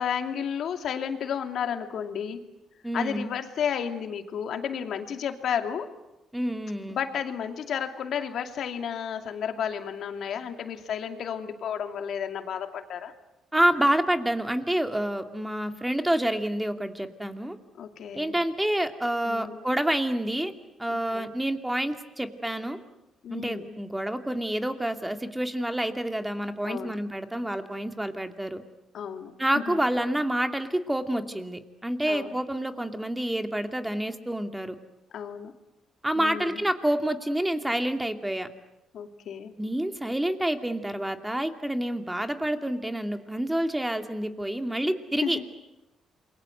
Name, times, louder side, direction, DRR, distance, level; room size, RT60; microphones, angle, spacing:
voice 1, 0.0-2.4 2.9-5.9 6.9-13.1 17.8-18.3 19.2-19.6 20.9-21.3 23.2-23.8 26.6-27.0 28.9-29.8 32.1-32.3 35.1-35.5 36.2-36.6 38.9-39.5 45.2-45.4, left 8 dB, 70° left, 6 dB, 2.6 m, -32 dB
voice 2, 2.8-3.3 6.3-7.0 13.5-17.6 18.1-20.5 20.8-22.8 23.3-28.6 29.4-34.8 36.0-38.5 39.6-45.4, right 1 dB, 10° right, 7 dB, 2.5 m, -28 dB
28.5 x 23.0 x 8.0 m, 0.94 s
cardioid pair, 90°, 0 cm